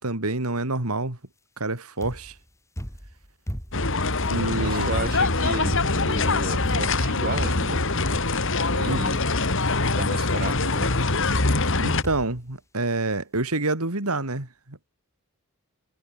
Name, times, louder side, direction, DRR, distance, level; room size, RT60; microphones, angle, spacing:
voice 1, 0.0-1.2 1.6-2.3 4.3-4.9 8.8-9.0 11.8-14.9, right 2 dB, 85° right, 3.1 m, -27 dB
sound 1, 2.0-2.4 2.8-3.9 4.2-6.2 6.6-7.1 7.3-7.8 8.1-8.5 8.9-9.4 9.7-10.1 10.5-10.8 11.3-11.8 12.0-12.4 13.1-13.2 13.4-13.5, equal, 15° left, 5.7 m, -36 dB
sound 2, 3.7-12.0, left 3 dB, 60° left, 2.8 m, -24 dB
voice 2, 4.6-7.8 8.7-9.2 10.0-11.0, right 2 dB, 45° right, 3.7 m, -33 dB
head